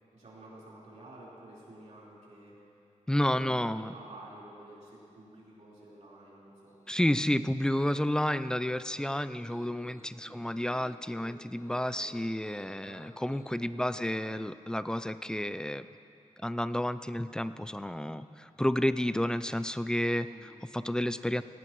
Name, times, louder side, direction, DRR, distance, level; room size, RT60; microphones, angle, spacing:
voice 1, 0.1-2.6 3.1-6.7 10.2-10.4 12.8-13.1 13.7-14.4 20.2-20.5, right 1 dB, 75° right, -7 dB, 4.2 m, -51 dB
voice 2, 3.1-3.9 6.9-15.9 16.4-21.4, left 1 dB, 5° left, 13 dB, 0.4 m, -31 dB
Piano, 6.7-13.5, left 1 dB, 20° left, 1.1 m, -57 dB
18.5 x 17.5 x 3.1 m, 2.6 s
wide cardioid pair, 110°, 12 cm